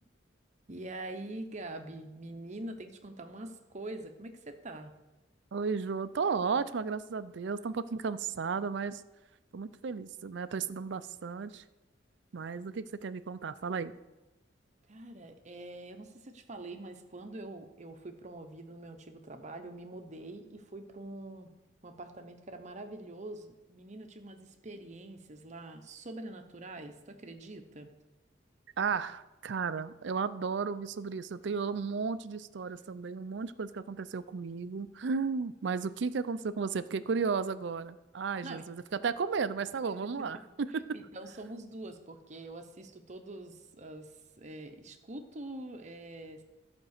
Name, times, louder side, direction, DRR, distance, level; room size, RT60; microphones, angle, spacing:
voice 1, 0.7-4.9 14.9-21.5 21.8-27.9 38.4-38.6 40.0-40.1 40.3-40.4 40.9-44.1 44.4-46.4, right 2 dB, 40° right, 6 dB, 0.9 m, -44 dB
voice 2, 5.5-9.0 9.5-11.6 12.3-13.9 28.8-40.8, right 5 dB, 60° right, 14 dB, 0.4 m, -34 dB
11.5 x 5.2 x 6.5 m, 1.0 s
head